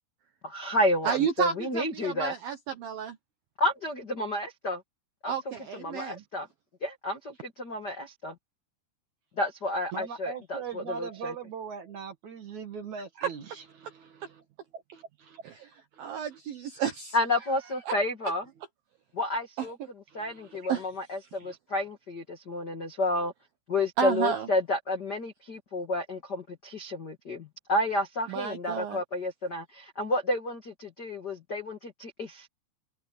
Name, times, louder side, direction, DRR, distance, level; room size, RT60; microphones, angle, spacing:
voice 1, 0.4-2.3 3.6-4.8 5.2-5.3 5.8-6.5 6.8-8.3 9.4-11.3 17.1-18.4 19.1-19.8 20.1-23.3 23.7-32.5, left 1 dB, 80° left, 0.9 m, -30 dB
voice 2, 1.0-3.2 5.3-6.2 13.2-13.3 15.4-15.7 16.0-17.2 17.9-18.0 19.6-19.7 20.7-20.9 24.0-24.5 28.3-29.0, right 8 dB, 75° right, 2.2 m, -31 dB
voice 3, 9.9-14.1 14.7-15.4 20.1-20.6 21.4-21.6, right 6 dB, 50° right, 2.4 m, -40 dB
open air
omnidirectional pair, 5.8 m